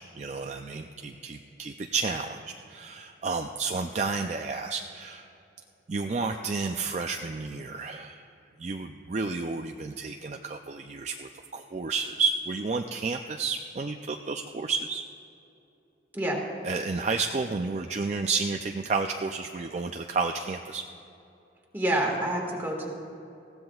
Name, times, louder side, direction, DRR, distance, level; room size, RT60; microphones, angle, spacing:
voice 1, 0.0-2.4 2.7-5.3 5.9-8.3 8.6-15.0 16.6-20.8, right 4 dB, 35° right, 4 dB, 0.4 m, -31 dB
voice 2, 21.7-22.9, right 1 dB, 10° right, -2 dB, 1.8 m, -27 dB
20.0 x 15.5 x 2.4 m, 2.7 s
head